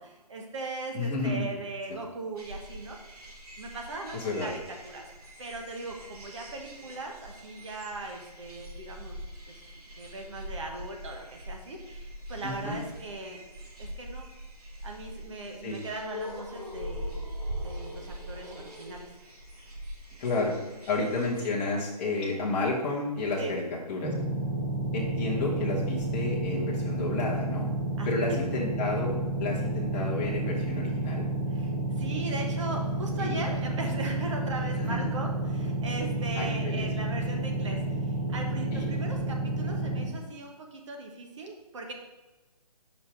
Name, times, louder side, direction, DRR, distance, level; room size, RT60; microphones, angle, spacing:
voice 1, 0.0-3.2 3.6-5.1 5.4-9.6 10.0-13.4 13.8-14.3 14.8-17.3 17.6-19.1 23.4-23.5 28.0-28.4 31.5-41.9, right 2 dB, 45° right, 1 dB, 1.2 m, -39 dB
voice 2, 0.9-1.4 4.1-4.5 12.4-12.8 15.6-15.8 20.2-20.6 20.9-23.6 23.9-24.1 24.9-27.7 28.1-31.2 33.2-33.4 34.8-35.1 36.4-36.9 38.7-38.9, left 2 dB, 20° left, -5 dB, 1.1 m, -31 dB
sound 1, 2.4-21.5, equal, 65° right, 2.3 m, -42 dB
sound 2, 24.0-40.0, right 2 dB, 10° right, 0.4 m, -30 dB
5.7 x 5.1 x 4.5 m, 1.1 s
hypercardioid pair, 160°, 21 cm